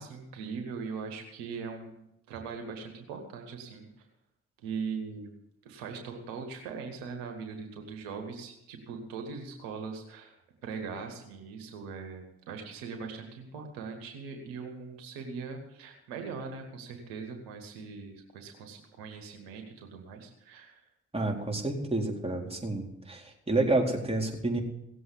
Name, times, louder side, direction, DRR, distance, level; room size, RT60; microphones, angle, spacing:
voice 1, 0.0-2.0 2.3-3.9 4.6-5.3 5.6-10.4 10.6-20.8, right 5 dB, 80° right, 5 dB, 1.7 m, -40 dB
voice 2, 21.1-24.6, right 2 dB, 15° right, 0 dB, 4.3 m, -29 dB
17.5 x 7.9 x 8.4 m, 0.84 s
hypercardioid pair, 40°, 34 cm